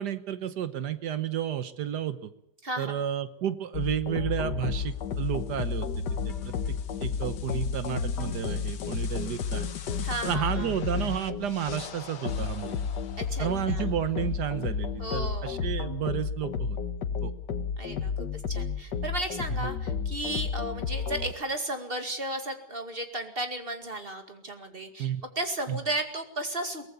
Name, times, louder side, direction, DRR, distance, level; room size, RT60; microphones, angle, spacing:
voice 1, 0.0-2.3 2.8-5.9 6.2-9.7 10.2-12.8 13.4-16.8 17.2-17.3 19.6-19.7 25.0-25.2 25.7-25.8, right 10 dB, 80° right, 12 dB, 1.6 m, -31 dB
voice 2, 2.6-3.0 10.0-10.7 13.2-13.9 15.0-15.6 17.8-26.9, right 1 dB, 35° right, 6 dB, 2.4 m, -34 dB
sound 1, 3.7-21.3, left 6 dB, 90° left, 1.8 m, -32 dB
22.5 x 18.5 x 7.0 m, 0.77 s
omnidirectional pair, 1.8 m